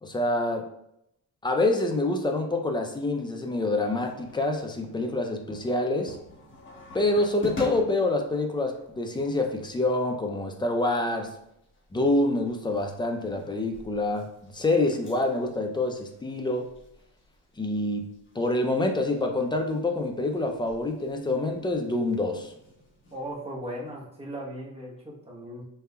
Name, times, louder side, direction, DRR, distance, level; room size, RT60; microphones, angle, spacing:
voice 1, 0.0-0.7 1.4-6.2 6.9-11.3 11.9-16.7 17.6-18.1 18.4-22.5, left 2 dB, 15° left, 4 dB, 0.4 m, -26 dB
sound 1, 3.8-23.3, left 1 dB, 35° left, 1.2 m, -47 dB
voice 2, 23.1-25.6, right 1 dB, 20° right, -3 dB, 1.0 m, -37 dB
5.4 x 3.3 x 2.3 m, 0.79 s
cardioid pair, 130°, 34 cm